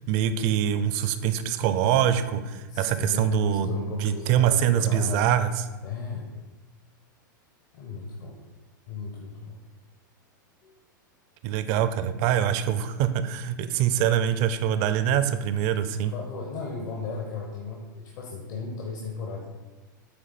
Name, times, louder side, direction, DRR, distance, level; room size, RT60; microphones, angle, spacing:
voice 1, 0.1-3.7 4.0-5.5 11.4-16.1, right 9 dB, 50° right, 11 dB, 0.5 m, -24 dB
voice 2, 2.7-5.3 5.8-6.3 7.7-8.4 8.9-9.6 10.6-10.7 16.0-19.4, left 4 dB, 65° left, -1 dB, 1.0 m, -35 dB
8.0 x 3.0 x 4.1 m, 1.2 s
hypercardioid pair, 115°, 11 cm